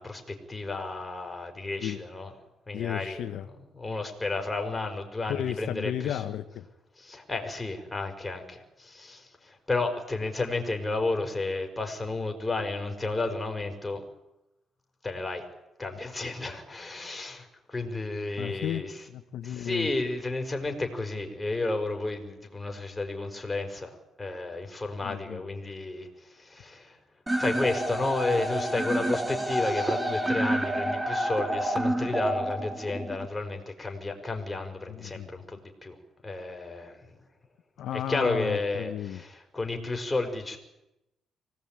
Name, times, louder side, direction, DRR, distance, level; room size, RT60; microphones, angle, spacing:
voice 1, 0.0-2.3 2.7-3.2 3.7-6.2 7.0-14.0 15.0-15.4 15.8-18.9 19.4-27.0 27.3-36.0 36.2-37.1 37.9-40.6, left 3 dB, 15° left, 4 dB, 5.4 m, -32 dB
voice 2, 2.7-3.5 5.3-6.7 18.4-19.9 25.0-25.4 34.9-35.3 37.8-39.2, left 10 dB, 75° left, 8 dB, 1.2 m, -34 dB
sound 1, 27.3-33.2, right 1 dB, 15° right, 2.7 m, -29 dB
25.0 x 18.5 x 9.1 m, 0.92 s
cardioid pair, 90°, 0 cm